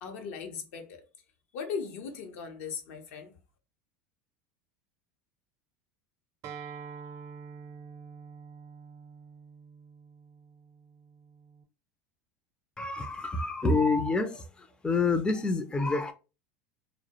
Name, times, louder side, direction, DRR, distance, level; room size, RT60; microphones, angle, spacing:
voice 1, 0.0-1.0 1.5-3.3, left 6 dB, 70° left, 0.6 m, -38 dB
Acoustic guitar, 6.4-11.6, right 6 dB, 45° right, 0.5 m, -46 dB
voice 2, 12.8-16.1, left 3 dB, 10° left, 0.4 m, -28 dB
2.2 x 2.0 x 2.7 m
hypercardioid pair, 90°, 8 cm